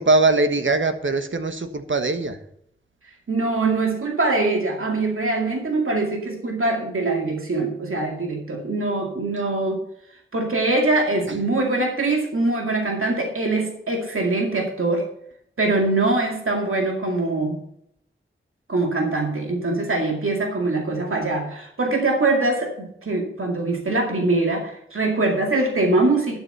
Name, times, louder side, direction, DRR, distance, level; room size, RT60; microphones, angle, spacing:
voice 1, 0.0-2.4, right 3 dB, 65° right, 8 dB, 1.4 m, -21 dB
voice 2, 3.3-9.8 10.3-15.1 15.6-17.6 18.7-26.4, right 2 dB, 85° right, 1 dB, 2.2 m, -23 dB
11.0 x 7.9 x 5.5 m, 0.71 s
wide cardioid pair, 45°, 21 cm